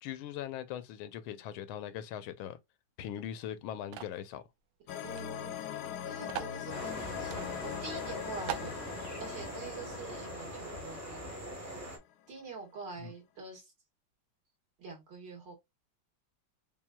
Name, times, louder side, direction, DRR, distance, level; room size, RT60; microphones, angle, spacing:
voice 1, 0.0-2.6 3.0-4.4 13.0-13.1, left 10 dB, 85° left, 1.4 m, -40 dB
sound 1, 3.9-4.2 5.1-5.2 5.5-5.6 6.3-6.6 7.3-7.5 7.9-8.0 8.5-8.8, right 11 dB, 80° right, 1.4 m, -39 dB
sound 2, 4.9-12.0, left 10 dB, 70° left, 1.0 m, -42 dB
voice 2, 5.0-5.6 6.1-11.4 12.3-13.7 14.8-15.5, right 4 dB, 60° right, 2.4 m, -46 dB
sound 3, 6.7-12.0, right 1 dB, 15° right, 0.6 m, -42 dB
5.5 x 2.5 x 2.2 m
omnidirectional pair, 2.2 m